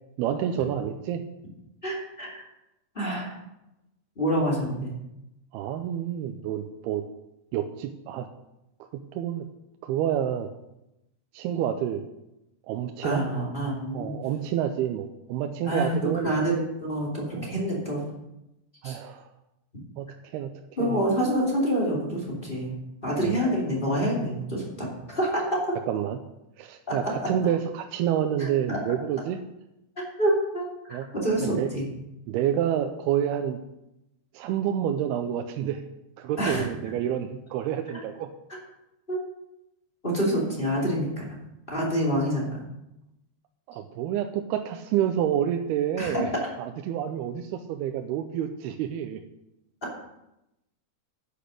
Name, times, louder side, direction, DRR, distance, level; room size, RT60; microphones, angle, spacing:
voice 1, 0.2-1.2 5.5-7.0 7.5-8.3 8.9-9.5 9.8-10.5 11.3-12.0 12.7-13.3 13.9-16.3 17.4-17.6 18.8-19.3 20.0-20.5 20.8-21.0 23.2-23.3 25.9-26.2 26.6-29.4 30.9-31.1 31.4-31.7 32.3-33.6 34.3-35.8 36.2-38.3 43.7-46.3 46.6-49.2, right 10 dB, 85° right, 6 dB, 2.6 m, -28 dB
voice 2, 1.8-2.4 2.9-3.4 4.2-4.9 13.0-14.1 15.6-15.9 16.2-18.0 18.8-19.0 20.8-22.8 23.0-25.6 28.4-28.8 30.0-31.9 36.4-36.9 37.9-38.0 39.1-39.2 40.0-41.2 41.7-42.6 46.0-46.2, right 1 dB, 15° left, -2 dB, 2.3 m, -27 dB
10.0 x 8.8 x 6.4 m, 0.90 s
omnidirectional pair, 4.7 m